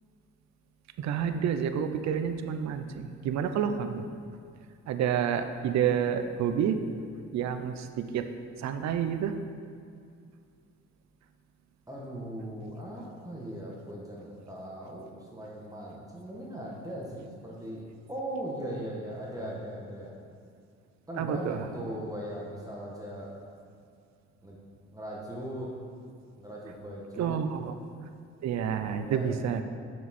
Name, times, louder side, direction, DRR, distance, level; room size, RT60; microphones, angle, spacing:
voice 1, 1.0-4.1 4.9-6.8 7.3-8.3 8.6-9.3 21.2-21.6 27.2-27.6 28.4-29.6, right 8 dB, 65° right, 8 dB, 0.6 m, -29 dB
voice 2, 11.9-17.8 18.1-20.1 21.1-23.3 24.4-24.6 24.9-25.7 26.4-27.7 29.0-29.5, right 1 dB, 10° right, -5 dB, 1.2 m, -39 dB
6.7 x 6.4 x 4.2 m, 2.4 s
cardioid pair, 90°, 30 cm